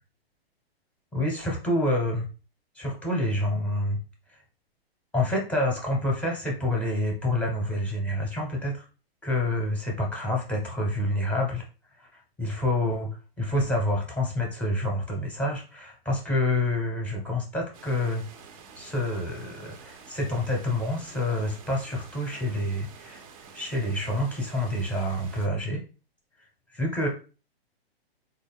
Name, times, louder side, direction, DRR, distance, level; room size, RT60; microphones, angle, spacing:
voice 1, 1.1-2.3 2.7-4.0 4.3-4.4 5.1-8.9 9.2-11.7 11.9-18.2 18.8-23.2 23.5-25.8 26.7-27.1, left 1 dB, 5° left, -1 dB, 0.7 m, -28 dB
sound 1, 17.7-25.5, right 6 dB, 35° right, 0.5 m, -49 dB
3.8 x 2.2 x 3.4 m, 0.34 s
hypercardioid pair, 135°, 31 cm